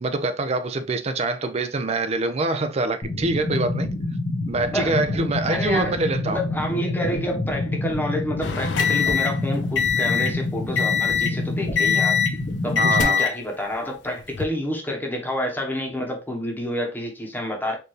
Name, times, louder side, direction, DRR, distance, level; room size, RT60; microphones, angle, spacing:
voice 1, 0.0-3.9 4.5-6.4 12.8-13.3, right 2 dB, 35° right, 0.5 m, -25 dB
sound 1, 3.0-13.0, left 2 dB, 45° left, 0.8 m, -28 dB
voice 2, 5.5-6.0 6.2-12.1 12.6-17.8, left 1 dB, 10° left, 1.0 m, -28 dB
sound 2, 8.4-10.4 10.8-11.4 11.8-12.4 12.8-13.4 14.2-14.5, left 7 dB, 70° left, 0.5 m, -23 dB
4.4 x 2.6 x 3.1 m
head